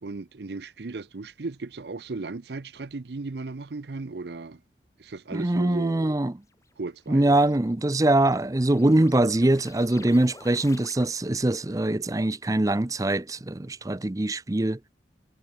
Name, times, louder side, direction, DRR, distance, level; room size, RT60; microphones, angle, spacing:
voice 1, 0.0-4.6 5.0-6.1 6.8-7.3, right 3 dB, 70° right, 0.7 m, -36 dB
voice 2, 5.3-6.3 7.1-14.8, right 1 dB, 20° right, 0.6 m, -23 dB
sound 1, 6.5-11.5, left 3 dB, 20° left, 2.3 m, -51 dB
head